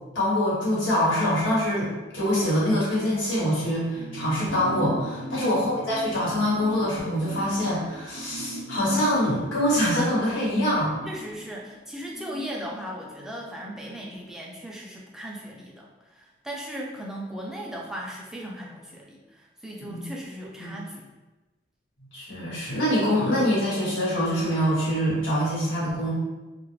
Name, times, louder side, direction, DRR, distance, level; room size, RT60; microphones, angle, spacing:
voice 1, 0.1-11.0 19.8-20.0 20.6-20.7 22.1-26.1, equal, 90° left, -7 dB, 1.2 m, -24 dB
sound 1, 3.9-13.8 14.1-14.2, equal, 70° right, 0.4 m, -39 dB
voice 2, 5.3-5.7 11.0-21.1, equal, 5° right, -3 dB, 0.3 m, -37 dB
2.3 x 2.0 x 3.1 m, 1.1 s
head